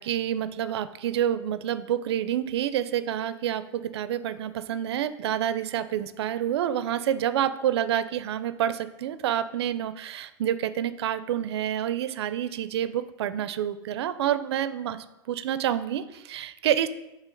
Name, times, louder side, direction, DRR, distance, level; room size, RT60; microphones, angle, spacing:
voice 1, 0.0-16.9, right 10 dB, 85° right, 13 dB, 0.4 m, -28 dB
6.8 x 3.3 x 4.5 m, 0.94 s
supercardioid pair, 175°, 13 cm